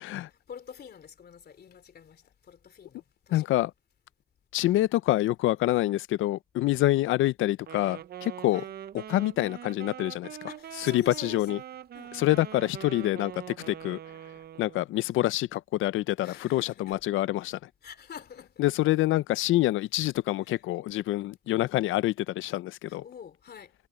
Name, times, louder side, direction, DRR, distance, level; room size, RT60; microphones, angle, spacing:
voice 1, 0.3-3.6 6.8-7.2 8.5-8.7 10.4-11.5 11.9-12.3 16.2-17.0 17.8-18.7 20.4-20.6 22.9-23.7, left 7 dB, 55° left, 3.2 m, -47 dB
voice 2, 3.3-3.7 4.5-8.6 9.1-10.4 10.9-11.6 12.2-14.0 14.6-17.6 18.6-23.0, left 16 dB, 85° left, 0.6 m, -26 dB
Wind instrument woodwind instrument, 7.6-14.9, right 10 dB, 55° right, 0.6 m, -43 dB
cardioid pair, 90°, 20 cm